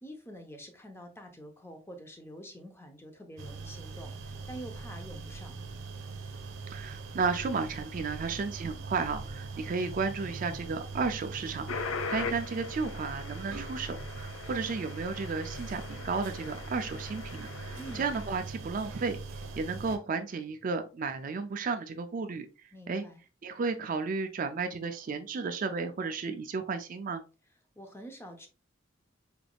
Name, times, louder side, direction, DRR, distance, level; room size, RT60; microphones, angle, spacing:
voice 1, 0.0-5.5 17.8-18.1 22.7-23.2 27.8-28.5, right 1 dB, 10° left, 0.6 m, -46 dB
sound 1, 3.4-20.0, right 4 dB, 80° right, 0.8 m, -41 dB
voice 2, 6.7-23.0 23.4-27.2, right 4 dB, 40° right, 0.3 m, -33 dB
sound 2, 11.7-18.4, left 5 dB, 85° left, 0.6 m, -41 dB
4.9 x 3.4 x 2.3 m
head